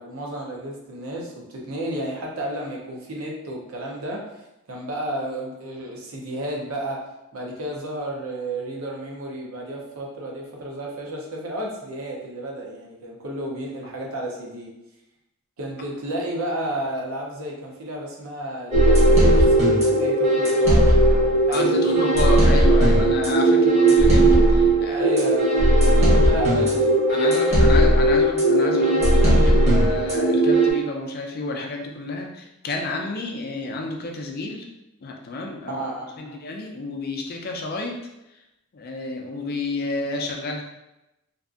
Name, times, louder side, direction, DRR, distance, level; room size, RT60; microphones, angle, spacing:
voice 1, 0.0-4.2 4.7-7.0 7.3-14.7 15.6-22.0 23.5-23.7 24.8-27.0 35.7-36.3, right 1 dB, 80° right, -2 dB, 0.7 m, -32 dB
sound 1, 18.7-30.7, right 1 dB, 30° right, 0.8 m, -17 dB
voice 2, 21.5-25.0 27.1-34.7 35.0-35.8 36.2-38.0 38.3-38.4 38.7-40.6, left 2 dB, 45° left, 1 dB, 0.4 m, -30 dB
2.6 x 2.4 x 2.4 m, 0.92 s
head